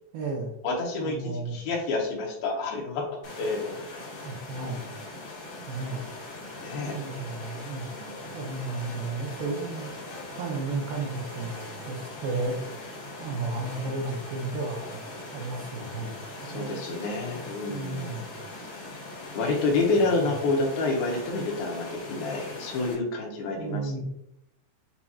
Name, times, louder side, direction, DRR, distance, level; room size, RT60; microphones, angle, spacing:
voice 1, 0.1-0.5 1.0-1.6 4.2-4.9 5.7-6.0 6.8-9.9 10.3-12.6 13.2-16.2 16.5-16.8 17.7-18.4 20.2-20.3 23.6-24.0, right 3 dB, 75° right, 0 dB, 2.4 m, -33 dB
voice 2, 0.6-3.1 3.4-3.8 6.6-7.0 13.8-13.9 16.5-18.2 19.3-24.0, left 3 dB, 80° left, 1 dB, 2.6 m, -28 dB
sound 1, 3.2-22.9, left 2 dB, 60° left, 2.6 m, -41 dB
7.3 x 2.8 x 2.3 m, 0.79 s
omnidirectional pair, 4.4 m